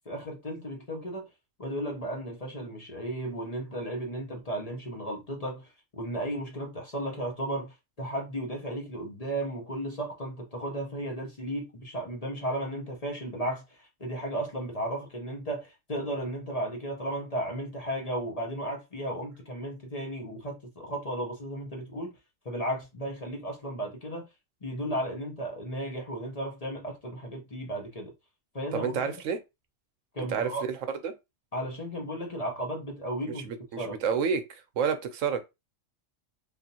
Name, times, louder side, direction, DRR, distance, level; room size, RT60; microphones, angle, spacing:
voice 1, 0.1-1.3 1.6-22.1 22.4-24.3 24.6-28.1 28.5-29.0 30.1-30.6 31.5-33.5 33.8-34.0, right 1 dB, 35° left, 0.8 m, -34 dB
voice 2, 28.7-29.4 30.2-31.1 33.4-35.4, right 6 dB, 75° right, 1.0 m, -30 dB
3.5 x 2.5 x 2.7 m
omnidirectional pair, 1.3 m